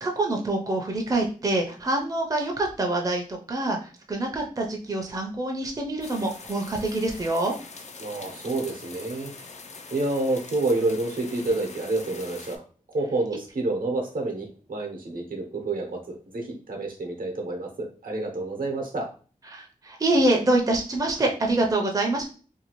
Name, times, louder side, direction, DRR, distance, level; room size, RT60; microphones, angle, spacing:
voice 1, 0.0-7.5 19.5-22.2, right 2 dB, 25° right, 1 dB, 0.5 m, -25 dB
sound 1, 6.0-12.6, left 4 dB, 50° left, 0.4 m, -43 dB
voice 2, 8.0-9.3 9.9-12.6 12.9-19.1, right 2 dB, 80° right, 2 dB, 0.8 m, -28 dB
2.6 x 2.3 x 2.9 m, 0.39 s
wide cardioid pair, 95°, 14 cm